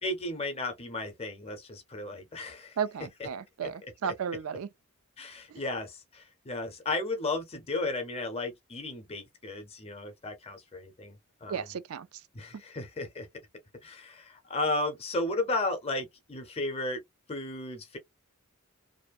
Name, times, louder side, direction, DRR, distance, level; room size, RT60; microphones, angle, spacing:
voice 1, 0.0-2.8 3.2-3.3 3.6-3.7 4.0-4.1 5.2-11.7 12.3-13.3 13.8-17.0 17.3-18.0, left 2 dB, 25° left, 0.6 m, -34 dB
voice 2, 2.8-4.7 5.5-5.6 11.5-12.1, right 7 dB, 70° right, 0.4 m, -34 dB
2.6 x 2.1 x 2.3 m
head